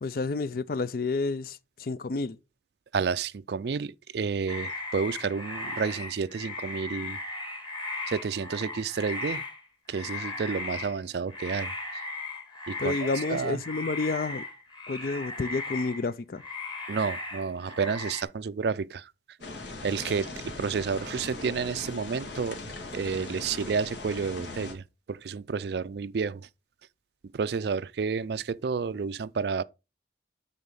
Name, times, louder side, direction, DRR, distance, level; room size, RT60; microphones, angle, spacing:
voice 1, 0.0-2.4 12.8-14.5 14.9-16.4, left 3 dB, 50° left, 0.4 m, -30 dB
voice 2, 2.9-7.2 8.1-9.4 9.9-12.0 12.7-13.6 16.9-19.1 19.8-26.5 27.3-29.6, right 5 dB, 65° right, 0.4 m, -30 dB
sound 1, 4.5-9.6 9.9-11.0 11.3-16.1 16.4-18.2, left 2 dB, 25° left, 1.7 m, -37 dB
sound 2, 19.4-24.7, left 2 dB, 80° left, 2.2 m, -40 dB
9.5 x 4.1 x 5.6 m
head